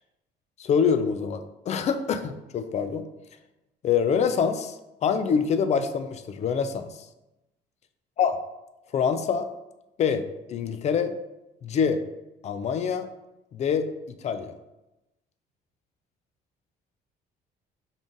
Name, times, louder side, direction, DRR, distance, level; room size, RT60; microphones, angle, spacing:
voice 1, 0.6-3.1 3.8-7.0 8.2-8.4 8.9-9.5 10.0-11.1 11.6-12.0 12.4-13.1 13.5-14.5, left 6 dB, 40° left, 10 dB, 0.4 m, -25 dB
5.3 x 2.4 x 3.8 m, 0.97 s
cardioid pair, 110°, 17 cm